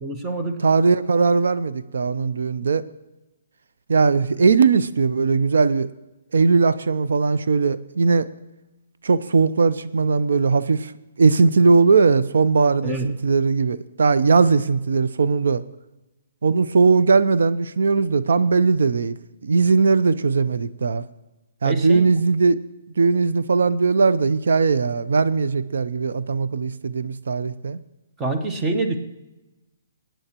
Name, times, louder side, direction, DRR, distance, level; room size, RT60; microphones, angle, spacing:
voice 1, 0.0-0.6 12.8-13.1 21.6-22.1 28.2-29.0, right 2 dB, 10° right, 4 dB, 0.8 m, -25 dB
voice 2, 0.6-2.8 3.9-5.9 6.3-8.3 9.0-10.9 11.2-15.6 16.4-19.2 19.4-21.0 21.6-22.6 23.0-27.8, right 4 dB, 80° right, 15 dB, 0.5 m, -19 dB
19.5 x 9.0 x 2.9 m, 1.0 s
hypercardioid pair, 175°, 0 cm